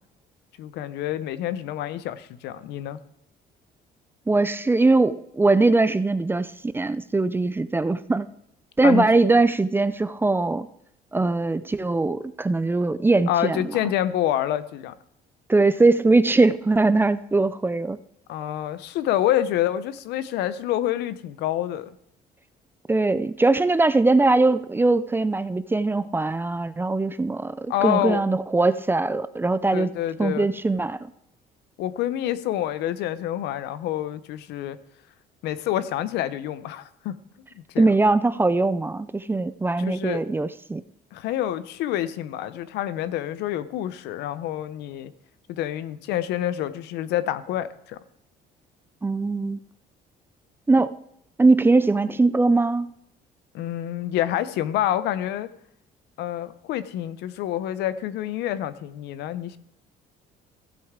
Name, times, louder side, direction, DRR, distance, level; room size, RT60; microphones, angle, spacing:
voice 1, 0.6-3.0 8.8-9.1 13.3-14.9 18.3-21.9 27.7-28.2 29.7-30.5 31.8-34.8 35.4-37.2 37.5-37.9 39.8-40.2 41.1-45.1 45.5-48.0 53.5-55.5 56.2-59.6, left 12 dB, 85° left, 0.7 m, -27 dB
voice 2, 4.3-8.3 8.8-10.7 11.1-13.6 15.5-18.0 22.9-29.9 30.2-31.1 37.8-40.8 49.0-49.6 50.7-50.9 51.4-52.9, right 3 dB, 15° right, 0.4 m, -21 dB
15.5 x 7.9 x 3.7 m
cardioid pair, 110°, 17 cm